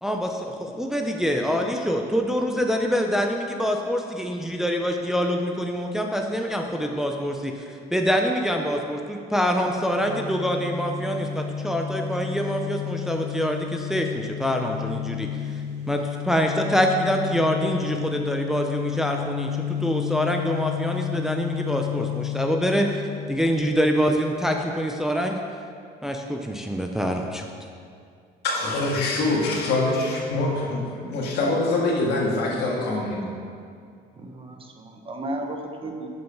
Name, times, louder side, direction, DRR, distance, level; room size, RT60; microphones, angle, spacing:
voice 1, 0.0-23.0 23.3-25.4 26.0-27.5, equal, 5° right, 2 dB, 0.6 m, -25 dB
sound 1, 9.5-24.0, left 10 dB, 90° right, 1.7 m, -32 dB
voice 2, 28.4-33.3, left 2 dB, 80° left, -3 dB, 1.9 m, -24 dB
voice 3, 34.2-36.1, right 1 dB, 30° right, 3 dB, 1.0 m, -34 dB
6.8 x 6.4 x 5.9 m, 2.3 s
cardioid pair, 110°, 17 cm